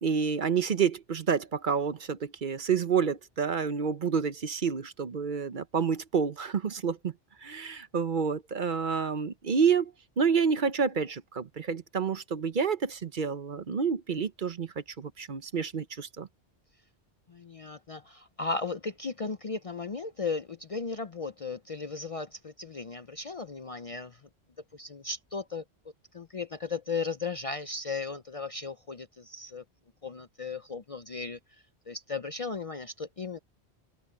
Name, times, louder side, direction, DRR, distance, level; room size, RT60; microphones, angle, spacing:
voice 1, 0.0-7.1 7.4-16.3, right 6 dB, 50° right, 0.9 m, -29 dB
voice 2, 17.3-24.3 24.7-25.6 26.1-29.6 30.0-31.4 31.9-33.4, left 4 dB, 40° left, 0.5 m, -36 dB
open air
omnidirectional pair, 1.1 m